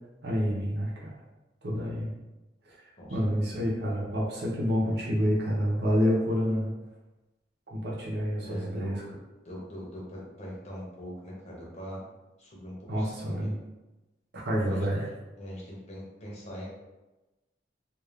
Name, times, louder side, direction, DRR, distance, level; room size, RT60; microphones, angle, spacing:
voice 1, 0.2-1.1 1.6-2.1 3.1-6.7 7.7-9.0 12.9-13.6 14.3-15.1, equal, 65° right, -4 dB, 0.8 m, -28 dB
voice 2, 8.4-9.1 9.4-12.0 12.4-13.5 14.6-14.9 15.4-16.7, equal, 40° left, -4 dB, 0.8 m, -41 dB
2.5 x 2.4 x 3.3 m, 1.1 s
head